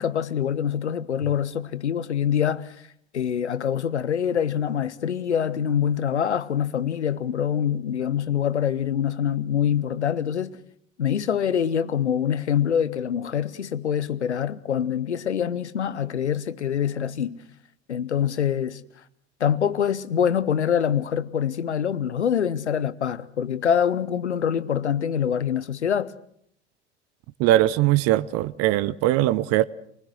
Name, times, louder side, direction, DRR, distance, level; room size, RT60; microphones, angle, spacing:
voice 1, 0.0-2.8 3.1-10.6 11.0-17.4 17.9-18.8 19.4-26.1, left 8 dB, 80° left, 1.0 m, -25 dB
voice 2, 27.4-29.6, right 15 dB, 45° right, 0.8 m, -20 dB
28.0 x 20.5 x 6.4 m
figure-of-eight pair, 65°, 34 cm